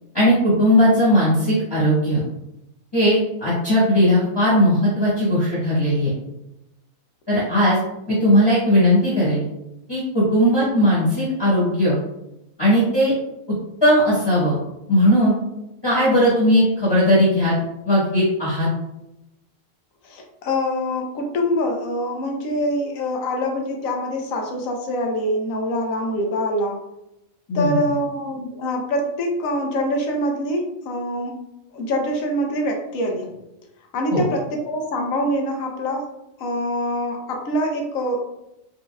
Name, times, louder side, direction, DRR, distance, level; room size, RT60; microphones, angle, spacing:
voice 1, 0.1-2.2 2.9-6.1 7.3-7.8 8.1-9.4 9.9-12.0 12.6-13.1 13.8-14.5 14.9-15.4 15.8-17.5 17.8-18.7 27.5-27.8 34.1-34.2, equal, 20° left, -9 dB, 1.3 m, -18 dB
voice 2, 20.0-26.8 27.5-31.4 31.7-33.3 33.9-36.1 36.4-38.3, equal, 80° left, 2 dB, 1.1 m, -24 dB
5.3 x 2.8 x 2.2 m, 0.87 s
omnidirectional pair, 1.4 m